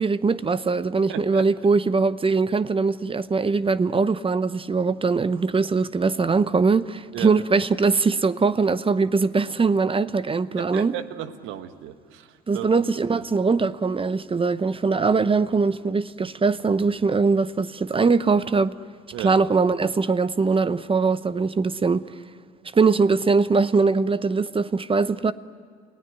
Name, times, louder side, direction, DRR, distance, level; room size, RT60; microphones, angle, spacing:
voice 1, 0.0-10.9 12.5-18.7 19.2-22.0 22.7-25.3, right 4 dB, 25° right, 0.8 m, -21 dB
voice 2, 1.1-1.5 7.1-7.3 10.6-13.2 19.1-19.4, right 12 dB, 75° right, 1.3 m, -35 dB
29.0 x 17.5 x 9.6 m
hypercardioid pair, 55°, 20 cm